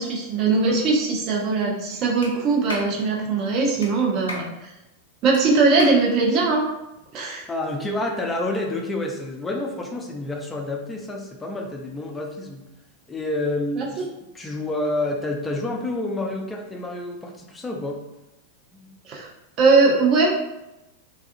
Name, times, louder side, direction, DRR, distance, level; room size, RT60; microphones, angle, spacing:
voice 1, 0.0-4.7 5.2-6.6 7.1-7.4 13.8-14.1 19.1-19.3 19.6-20.3, right 3 dB, 35° right, -1 dB, 0.6 m, -20 dB
Clapping, 2.2-2.3 2.7-2.9 3.8-3.9 4.3-4.5 5.3-5.4 5.8-6.0, left 1 dB, 75° left, 0.5 m, -33 dB
voice 2, 7.5-12.6 13.1-14.1 14.3-18.0 18.8-18.9, left 2 dB, 15° left, 2 dB, 0.4 m, -28 dB
2.3 x 2.3 x 2.5 m, 0.93 s
figure-of-eight pair, 90°, 0 cm